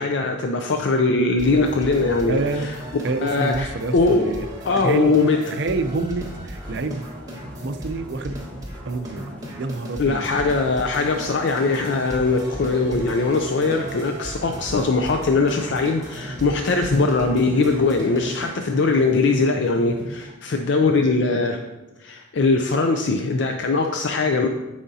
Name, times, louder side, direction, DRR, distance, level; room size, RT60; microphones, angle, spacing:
voice 1, 0.0-2.7 3.2-4.4 4.7-5.4 10.0-21.6 22.0-24.5, left 3 dB, 65° left, 4 dB, 0.5 m, -21 dB
sound 1, 1.4-18.5, equal, 20° right, 1.5 m, -37 dB
voice 2, 2.3-2.7 3.0-4.5 4.7-7.1 7.6-8.4 8.9-9.3 9.6-10.3, right 3 dB, 60° right, 9 dB, 0.5 m, -27 dB
sound 2, 6.6-20.2, equal, 10° left, 1.0 m, -42 dB
11.0 x 5.0 x 2.8 m, 1.1 s
head